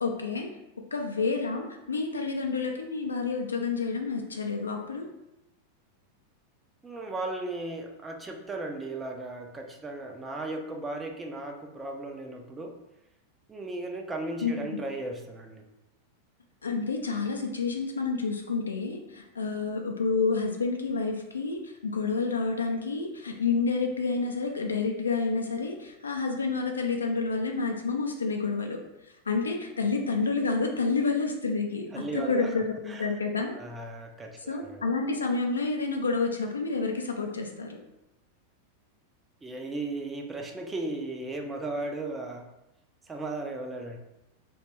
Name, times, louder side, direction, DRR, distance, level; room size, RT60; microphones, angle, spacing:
voice 1, 0.0-0.5 0.9-5.0 14.4-14.8 16.6-28.8 29.3-33.6 34.5-37.8, left 4 dB, 75° left, 2 dB, 0.4 m, -29 dB
voice 2, 6.8-12.7 13.5-15.6 31.9-33.2 33.5-34.9 39.4-42.5 43.1-44.0, right 2 dB, 15° right, 2 dB, 0.3 m, -36 dB
2.2 x 2.1 x 3.2 m, 0.92 s
figure-of-eight pair, 90°, 0 cm